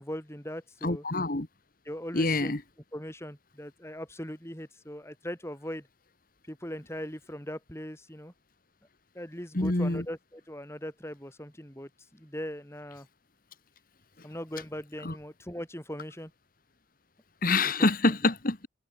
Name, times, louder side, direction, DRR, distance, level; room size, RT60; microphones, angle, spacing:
voice 1, 0.0-1.0 1.8-2.6 2.9-5.9 6.5-8.3 9.1-13.1 14.2-16.3 17.6-18.1, equal, 15° left, 6.2 m, -40 dB
voice 2, 0.8-1.5 2.1-2.6 9.5-10.0 15.0-15.1 17.4-18.7, left 2 dB, 45° left, 1.6 m, -26 dB
head